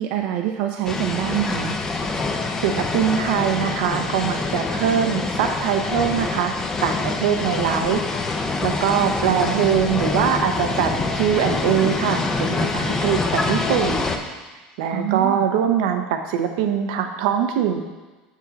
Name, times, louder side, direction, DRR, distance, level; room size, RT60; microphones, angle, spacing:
voice 1, 0.0-1.8 9.3-9.7 14.9-15.4, right 11 dB, 55° right, 3 dB, 0.4 m, -26 dB
sound 1, 0.9-14.2, left 3 dB, 15° left, 0.5 m, -25 dB
voice 2, 2.6-6.5 6.8-8.0 8.6-14.1 14.8-17.8, right 8 dB, 80° right, 6 dB, 0.8 m, -22 dB
6.5 x 6.4 x 4.0 m, 1.2 s
cardioid pair, 170°, 3 cm